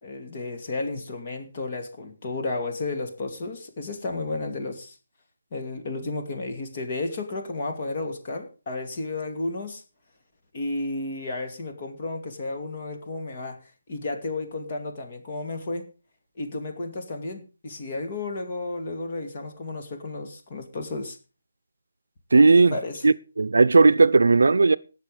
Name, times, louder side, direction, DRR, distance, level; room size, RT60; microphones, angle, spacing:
voice 1, 0.0-5.0 5.5-9.8 10.5-15.9 16.4-21.2 22.7-23.1, left 2 dB, 30° left, 2.4 m, -32 dB
voice 2, 22.3-22.7 23.0-24.8, right 3 dB, 80° right, 0.7 m, -16 dB
18.0 x 7.0 x 5.1 m
hypercardioid pair, 175°, 0 cm